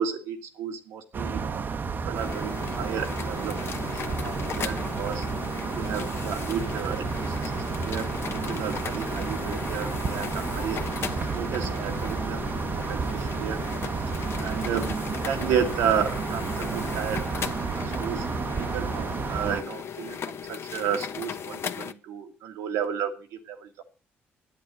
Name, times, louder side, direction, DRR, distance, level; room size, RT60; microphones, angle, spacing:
voice 1, 0.0-5.3 5.7-10.8 11.3-12.5 12.8-13.6 14.4-14.9 15.2-18.3 18.6-23.8, right 8 dB, 90° right, 5 dB, 1.9 m, -32 dB
sound 1, 1.1-19.6, right 5 dB, 45° right, 0.9 m, -31 dB
sound 2, 2.1-21.9, left 7 dB, 60° left, 0.9 m, -37 dB
10.0 x 8.3 x 7.6 m, 0.37 s
supercardioid pair, 70°, 5 cm